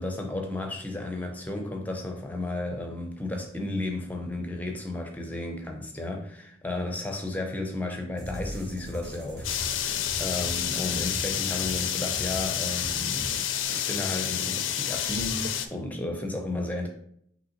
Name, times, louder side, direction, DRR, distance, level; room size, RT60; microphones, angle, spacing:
voice 1, 0.0-9.5 9.7-13.4 13.7-16.9, left 2 dB, 10° left, 0.5 m, -33 dB
sound 1, 8.2-13.6, equal, 70° right, 1.3 m, -40 dB
sound 2, 9.4-15.7, left 9 dB, 90° left, 0.4 m, -29 dB
5.4 x 3.0 x 2.9 m
head